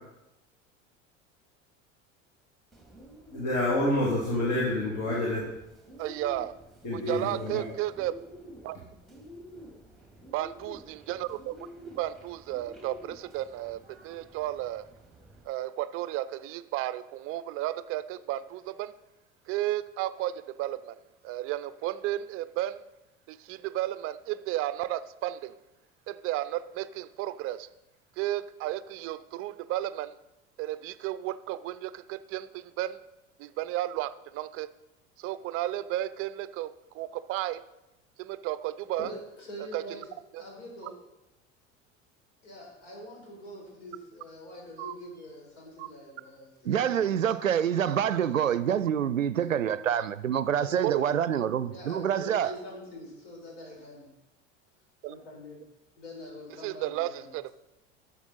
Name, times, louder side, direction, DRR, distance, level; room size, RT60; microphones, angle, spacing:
Bird, 2.7-15.4, equal, ahead, 2.0 m, -49 dB
voice 1, 3.3-5.4 6.8-7.6, left 1 dB, 45° left, 2.8 m, -28 dB
voice 2, 6.0-6.5 6.9-8.1 8.6-8.8 10.3-11.6 12.0-14.8 15.5-18.9 19.5-21.0 21.2-22.8 23.3-25.5 26.1-27.7 28.2-30.2 30.6-33.0 33.4-34.7 35.2-37.6 38.2-39.1 39.7-40.0 40.3-40.4 40.8-40.9 44.8-44.9 45.8-45.9 50.8-51.1 55.0-55.2 56.6-57.5, right 14 dB, 35° right, 0.5 m, -33 dB
voice 3, 39.0-40.1 40.4-40.9 42.4-47.1 49.5-49.6 50.6-51.1 51.7-54.1 55.1-55.6 56.0-57.3, left 1 dB, 65° left, 4.3 m, -44 dB
voice 4, 46.6-52.5, right 9 dB, 85° right, 0.5 m, -26 dB
11.5 x 7.3 x 4.1 m
figure-of-eight pair, 75°, 38 cm